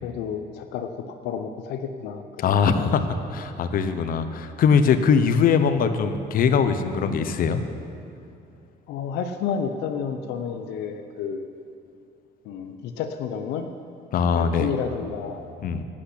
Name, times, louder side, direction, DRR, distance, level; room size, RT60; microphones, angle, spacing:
voice 1, 0.0-2.6 8.9-11.5 12.4-13.7 14.4-15.4, left 7 dB, 85° left, 7 dB, 0.7 m, -30 dB
voice 2, 2.4-3.0 3.3-7.6 14.1-14.7 15.6-15.8, left 6 dB, 55° left, 9 dB, 0.9 m, -21 dB
11.0 x 8.6 x 8.5 m, 2.5 s
cardioid pair, 110°, 17 cm